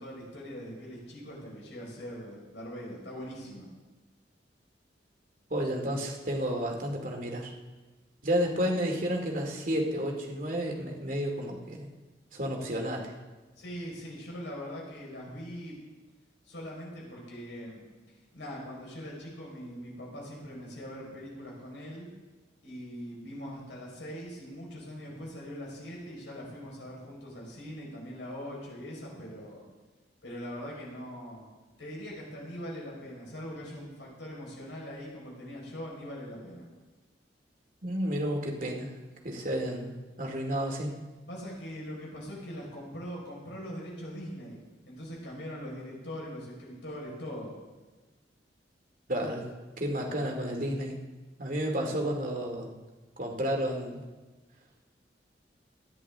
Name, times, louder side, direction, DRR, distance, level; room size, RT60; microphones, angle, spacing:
voice 1, 0.0-3.7 13.6-15.8 16.4-17.8 18.3-22.1 22.6-29.6 30.2-31.4 31.8-36.7 41.3-44.6 44.8-47.6, equal, 85° left, -3 dB, 5.1 m, -41 dB
voice 2, 5.5-7.5 8.2-11.9 12.3-13.1 37.8-39.0 39.2-41.0 49.1-49.4 49.8-51.0 51.4-52.8 53.2-54.0, equal, 50° right, 1 dB, 2.5 m, -31 dB
27.0 x 11.0 x 3.7 m, 1.3 s
head